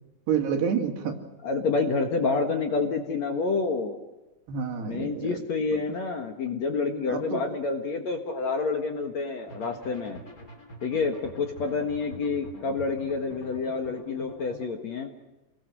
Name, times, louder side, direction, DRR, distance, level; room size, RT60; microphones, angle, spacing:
voice 1, 0.3-1.2 4.5-5.4 7.1-7.4, right 7 dB, 80° right, 3 dB, 4.5 m, -28 dB
voice 2, 1.4-4.0 4.9-10.2 10.8-15.1, left 4 dB, 55° left, 4 dB, 2.2 m, -28 dB
sound 1, 9.5-14.7, equal, 25° left, 2.9 m, -46 dB
28.5 x 21.0 x 6.3 m, 1.1 s
omnidirectional pair, 4.8 m